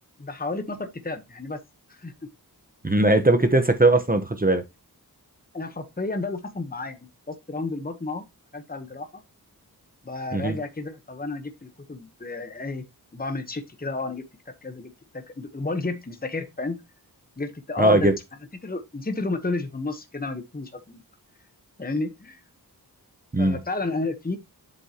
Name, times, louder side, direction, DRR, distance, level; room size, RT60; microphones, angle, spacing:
voice 1, 0.2-1.6 1.9-2.1 5.5-7.0 7.3-8.2 8.5-9.1 10.0-12.8 13.1-14.2 14.6-16.8 17.4-18.1 18.6-21.0 21.8-22.4 23.4-24.4, left 3 dB, 25° left, 1.1 m, -31 dB
voice 2, 2.8-4.6 10.3-10.5 17.8-18.1 23.3-23.6, right 2 dB, 20° right, 1.0 m, -19 dB
7.7 x 7.6 x 2.9 m
wide cardioid pair, 55°, 39 cm